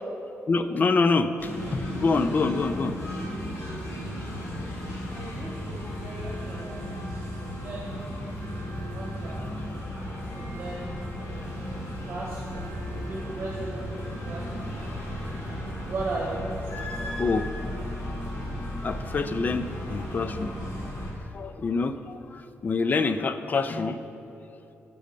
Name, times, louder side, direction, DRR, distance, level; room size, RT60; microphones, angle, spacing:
voice 1, 0.5-3.0 5.1-5.2 5.8-6.1 6.5-6.6 14.9-15.1 17.2-17.5 18.8-20.5 21.3-24.0, left 4 dB, 35° left, 11 dB, 0.3 m, -26 dB
sound 1, 1.4-21.1, equal, 80° left, 2.1 m, -35 dB
voice 2, 5.1-7.0 7.3-8.1 8.9-9.7 10.2-14.7 15.6-16.9, right 2 dB, 45° right, -3 dB, 1.1 m, -38 dB
8.4 x 6.3 x 5.2 m, 3.0 s
wide cardioid pair, 140°, 5 cm